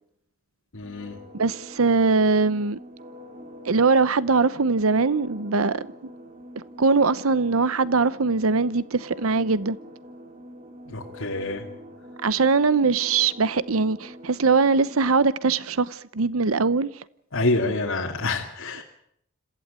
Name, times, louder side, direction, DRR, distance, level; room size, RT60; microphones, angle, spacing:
voice 1, 0.7-1.2 10.9-11.7 17.3-18.8, left 2 dB, 80° left, 2.6 m, -27 dB
sound 1, 0.8-15.2, equal, 40° right, 2.6 m, -44 dB
voice 2, 1.3-2.8 3.6-5.9 6.8-9.8 12.2-16.9, right 4 dB, 85° right, 0.8 m, -21 dB
27.0 x 15.0 x 8.9 m
head